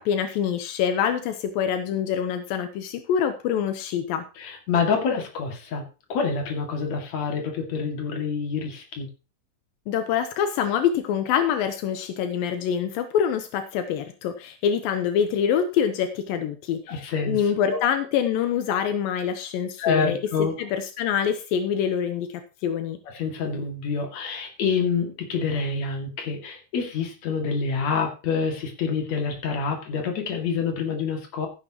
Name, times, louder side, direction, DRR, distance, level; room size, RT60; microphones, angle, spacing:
voice 1, 0.0-4.2 9.9-23.0, left 8 dB, 85° left, 8 dB, 2.6 m, -25 dB
voice 2, 4.4-9.1 16.9-17.8 19.8-20.6 23.1-31.5, left 5 dB, 55° left, 3 dB, 3.3 m, -27 dB
15.0 x 10.0 x 3.0 m, 0.31 s
omnidirectional pair, 4.1 m